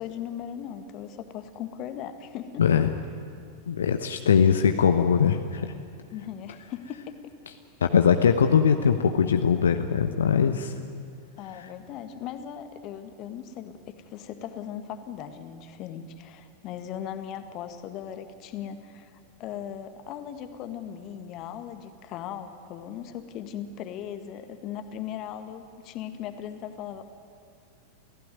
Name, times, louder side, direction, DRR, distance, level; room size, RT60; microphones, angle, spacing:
voice 1, 0.0-2.7 6.1-7.3 11.4-27.0, left 9 dB, 40° left, 9 dB, 1.8 m, -38 dB
voice 2, 2.6-2.9 3.7-5.7 7.8-10.7, left 7 dB, 65° left, 7 dB, 1.0 m, -21 dB
28.5 x 16.5 x 9.6 m, 2.5 s
figure-of-eight pair, 90°, 0 cm